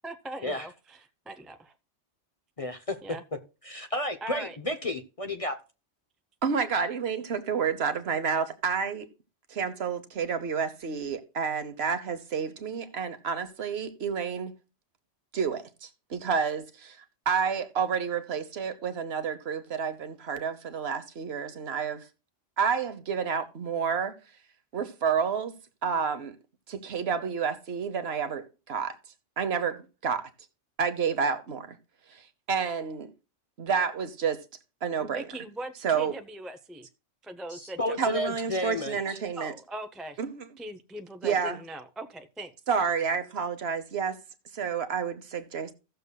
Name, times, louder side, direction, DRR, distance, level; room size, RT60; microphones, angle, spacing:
voice 1, 0.0-1.0 1.3-1.6 3.0-3.2 4.2-4.6 35.0-36.9 37.2-38.0 39.4-40.2 40.6-42.5, right 1 dB, ahead, 0.4 m, -40 dB
voice 2, 2.6-3.0 3.6-5.6 37.5-39.2, left 1 dB, 35° left, 0.7 m, -32 dB
voice 3, 6.4-9.1 9.5-14.5 15.3-22.0 22.6-24.1 24.7-25.5 25.8-26.4 26.7-28.9 29.4-30.3 30.8-31.8 32.1-32.2 32.5-33.1 33.6-34.4 34.8-35.2 35.8-36.2 38.0-39.5 40.2-40.4 41.2-41.6 42.7-44.2 44.5-45.7, right 6 dB, 60° right, 1.1 m, -29 dB
16.5 x 6.8 x 2.2 m
omnidirectional pair, 1.3 m